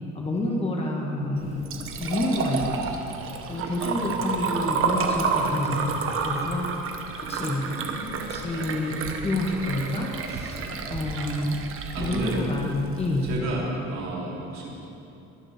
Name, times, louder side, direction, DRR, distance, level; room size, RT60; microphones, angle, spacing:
voice 1, 0.2-1.7 2.0-3.0 3.5-6.7 7.2-7.6 8.3-9.0 9.2-11.6 12.0-13.3, left 2 dB, 20° left, -1 dB, 1.7 m, -28 dB
Liquid, 1.4-13.4, right 5 dB, 45° right, 1.3 m, -30 dB
voice 2, 3.6-4.1 7.5-8.2 8.5-8.7 10.5-10.8 11.9-12.4 13.2-14.7, right 2 dB, 65° right, -5 dB, 4.4 m, -33 dB
22.0 x 7.6 x 6.9 m, 2.9 s
cardioid pair, 165°, 30 cm